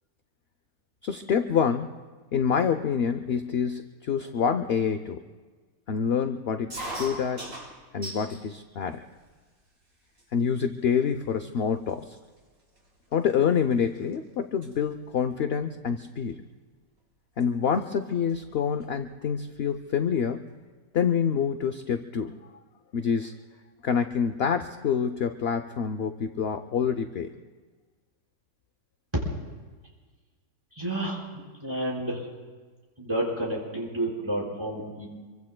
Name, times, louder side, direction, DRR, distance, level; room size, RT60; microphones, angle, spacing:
voice 1, 1.0-1.9 2.3-5.2 5.9-7.5 7.9-9.1 10.3-12.2 13.1-16.4 17.4-20.4 20.9-22.4 22.9-23.3 23.8-27.3, left 7 dB, 60° left, 9 dB, 0.7 m, -27 dB
sound 1, 6.7-8.4 8.9-9.5 10.2-10.3 10.5-10.9 11.6-11.7 11.9-14.1 14.4-14.7 16.1-16.3 17.4-17.5 17.7-17.8 18.1-19.0, right 1 dB, 55° right, 4.6 m, -40 dB
voice 2, 30.8-31.2 31.6-32.2 33.0-35.1, right 1 dB, 15° right, -4 dB, 4.7 m, -30 dB
27.0 x 23.5 x 2.2 m, 1.4 s
omnidirectional pair, 1.6 m